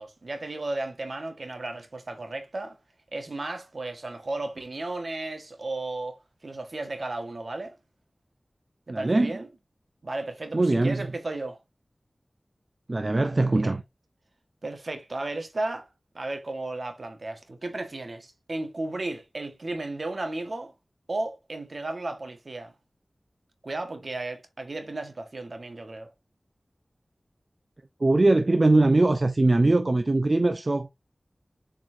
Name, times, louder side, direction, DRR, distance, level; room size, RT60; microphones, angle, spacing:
voice 1, 0.0-2.8 3.1-6.2 6.4-7.7 8.9-9.5 10.0-11.6 13.1-13.7 14.6-15.9 16.1-20.7 21.1-22.7 23.6-26.1, right 2 dB, 60° right, 1.6 m, -34 dB
voice 2, 8.9-9.3 10.5-11.1 12.9-13.8 28.0-30.9, right 2 dB, 45° right, 0.7 m, -21 dB
7.6 x 4.5 x 2.7 m
wide cardioid pair, 60°, 0 cm